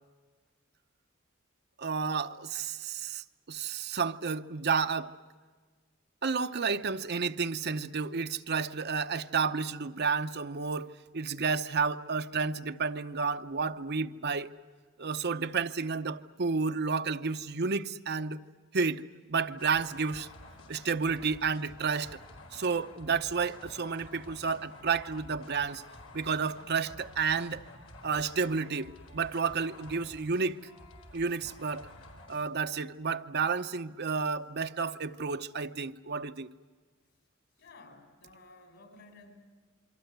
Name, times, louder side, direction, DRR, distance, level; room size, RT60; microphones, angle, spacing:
voice 1, 1.8-5.1 6.2-14.5 15.0-18.4 18.7-19.0 19.3-20.3 20.7-22.1 22.5-25.8 26.1-27.6 28.0-30.6 31.1-31.9 32.3-36.5, right 5 dB, 55° right, 0.8 m, -31 dB
sound 1, 19.6-32.5, left 2 dB, 80° left, 4.3 m, -51 dB
voice 2, 37.6-39.3, left 3 dB, 60° left, 6.0 m, -54 dB
27.5 x 24.5 x 8.1 m
head